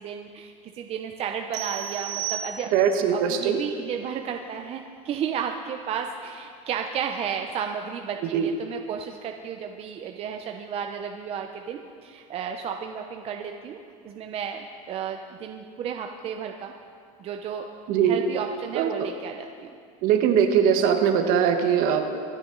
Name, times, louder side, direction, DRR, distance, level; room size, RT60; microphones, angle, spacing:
voice 1, 0.0-13.8 14.0-16.7 17.2-17.7 18.0-19.7, right 7 dB, 35° right, 4 dB, 0.8 m, -33 dB
sound 1, 1.5-3.1, right 11 dB, 75° right, 1.4 m, -33 dB
voice 2, 2.7-3.6 8.3-8.5 17.9-18.2 18.7-19.1 20.0-22.1, right 8 dB, 55° right, 6 dB, 1.4 m, -21 dB
24.5 x 9.3 x 3.9 m, 2.3 s
supercardioid pair, 130°, 18 cm